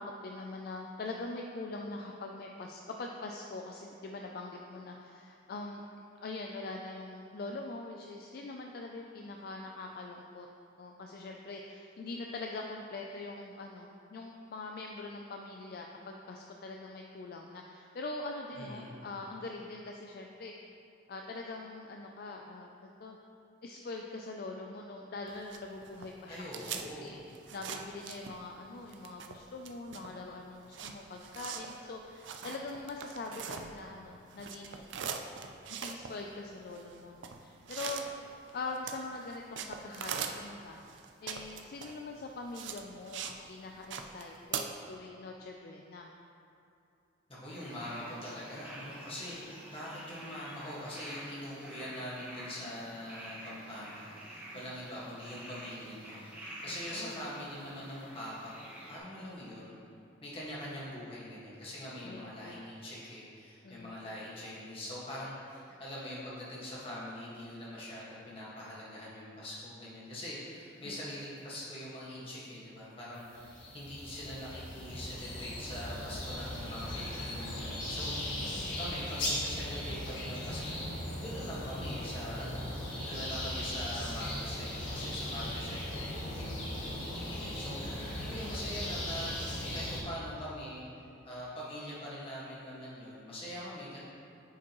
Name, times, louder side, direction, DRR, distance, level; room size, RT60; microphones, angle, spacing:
voice 1, 0.0-5.8 6.2-10.5 10.8-20.5 21.1-22.7 23.0-23.2 23.6-27.2 27.5-34.8 35.7-38.0 38.5-40.8 41.2-46.1 54.5-54.7 56.7-57.2 62.0-62.6 63.6-64.0 70.8-71.0 78.4-78.7 88.0-88.3, left 3 dB, 50° left, 1 dB, 0.4 m, -43 dB
voice 2, 18.6-19.1 26.3-27.2 47.3-59.8 60.2-78.5 78.8-80.9 81.2-82.7 83.0-90.8 91.2-94.0, left 1 dB, 30° left, -7 dB, 1.6 m, -43 dB
sound 1, 25.3-28.6 28.9-34.0 34.3-43.4 43.7-44.6, right 7 dB, 70° right, 0.4 m, -42 dB
sound 2, 47.5-59.0, right 1 dB, 10° right, 1.1 m, -48 dB
sound 3, 73.3-90.0, left 1 dB, 80° left, 1.4 m, -38 dB
9.0 x 5.0 x 3.0 m, 2.6 s
head